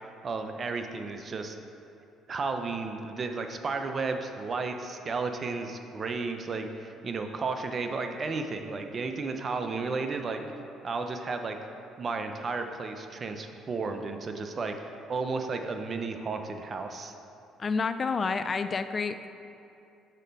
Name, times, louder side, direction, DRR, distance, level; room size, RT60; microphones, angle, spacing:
voice 1, 0.2-1.6 2.3-10.4 10.8-11.6 12.0-17.1, right 4 dB, 40° right, 6 dB, 0.6 m, -33 dB
voice 2, 17.6-19.3, left 4 dB, 40° left, 10 dB, 0.3 m, -29 dB
6.6 x 5.0 x 5.3 m, 2.7 s
supercardioid pair, 75°, 0 cm